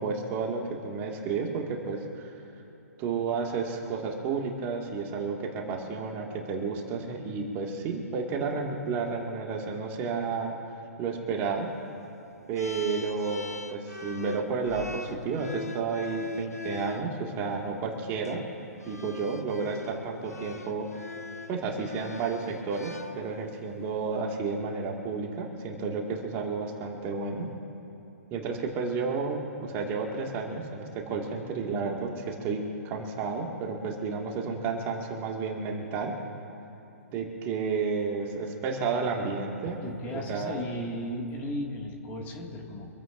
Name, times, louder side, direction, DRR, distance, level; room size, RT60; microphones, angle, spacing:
voice 1, 0.0-2.2 3.0-10.5 11.0-11.7 12.5-18.4 18.9-20.9 21.5-27.5 28.3-36.1 37.1-39.8 40.3-40.6, right 4 dB, 25° right, 0 dB, 2.0 m, -31 dB
sound 1, 12.6-17.1 18.1-18.3 18.8-23.6, left 3 dB, 80° left, 1.1 m, -42 dB
voice 2, 39.7-42.9, left 1 dB, 20° left, 0 dB, 2.1 m, -35 dB
26.0 x 15.5 x 2.6 m, 2.9 s
figure-of-eight pair, 120°, 8 cm